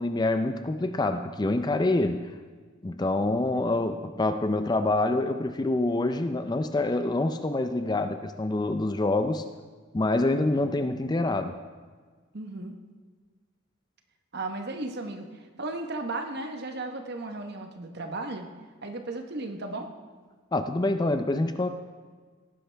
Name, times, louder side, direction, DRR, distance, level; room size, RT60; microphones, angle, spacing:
voice 1, 0.0-2.3 2.8-9.4 9.9-11.6 20.5-21.7, left 2 dB, 20° left, 9 dB, 0.4 m, -26 dB
voice 2, 12.3-12.7 14.3-18.5 18.8-19.9, right 2 dB, 50° right, 5 dB, 1.1 m, -35 dB
17.5 x 10.0 x 3.4 m, 1.5 s
head